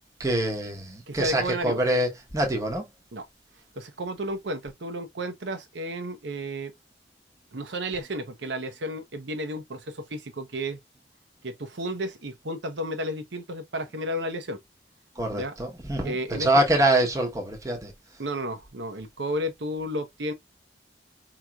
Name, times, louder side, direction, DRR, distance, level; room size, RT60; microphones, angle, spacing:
voice 1, 0.2-2.9 15.2-17.9, right 1 dB, 15° right, 1.0 m, -25 dB
voice 2, 1.1-1.8 3.1-3.2 3.8-6.7 7.5-10.8 11.4-14.6 15.3-15.5 16.0-16.5 18.2-20.3, equal, 75° right, 0.8 m, -32 dB
4.8 x 3.0 x 2.3 m
head